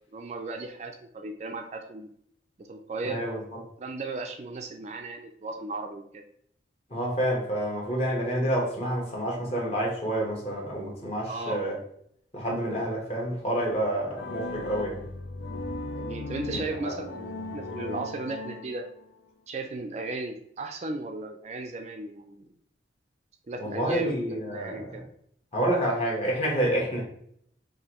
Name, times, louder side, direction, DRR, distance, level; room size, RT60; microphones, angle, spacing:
voice 1, 0.1-2.1 2.6-3.2 3.8-6.2 11.2-11.6 15.9-18.8 19.5-22.5 23.5-24.1 24.4-25.0, right 3 dB, 35° right, 0.3 m, -36 dB
voice 2, 3.0-3.4 6.9-11.8 12.3-15.0 16.5-16.9 23.6-24.8 25.5-27.0, right 1 dB, 35° left, 1.1 m, -28 dB
sound 1, 14.1-19.1, left 2 dB, 75° left, 0.5 m, -37 dB
4.9 x 2.6 x 2.9 m
head